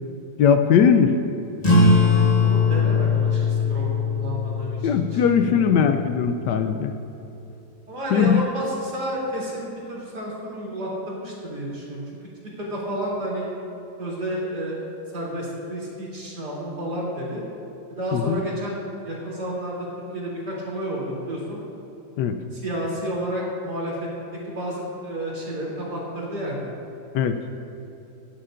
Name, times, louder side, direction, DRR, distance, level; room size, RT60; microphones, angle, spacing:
voice 1, 0.4-1.1 4.8-6.9 8.1-8.4 18.1-18.4 22.2-22.4 27.1-27.4, left 7 dB, 75° left, 7 dB, 1.1 m, -19 dB
sound 1, 1.6-6.7, left 3 dB, 20° left, 1.5 m, -21 dB
voice 2, 2.4-3.8 4.1-5.6 7.9-12.0 12.6-13.5 14.0-14.8 15.1-17.4 17.9-19.9 20.1-21.6 22.6-23.9 24.5-26.6, right 1 dB, 60° right, -6 dB, 3.7 m, -31 dB
17.5 x 11.0 x 2.5 m, 2.9 s
omnidirectional pair, 2.0 m